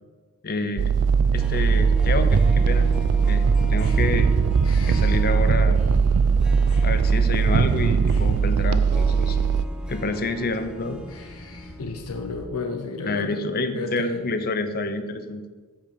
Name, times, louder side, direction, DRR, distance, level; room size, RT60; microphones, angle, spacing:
voice 1, 0.4-0.9 1.3-2.9 3.3-4.3 4.9-5.8 6.8-9.4 9.9-11.0 13.0-15.4, left 3 dB, 45° left, 9 dB, 0.8 m, -28 dB
sound 1, 0.8-9.6, right 5 dB, 85° right, 0.4 m, -20 dB
Harp, 1.2-12.2 12.5-12.6, left 1 dB, 5° right, 0.5 m, -42 dB
sound 2, 1.8-12.5, left 1 dB, 65° left, 1.4 m, -41 dB
voice 2, 11.8-14.2, left 3 dB, 85° left, 4 dB, 0.8 m, -32 dB
8.7 x 5.4 x 6.9 m, 1.4 s
head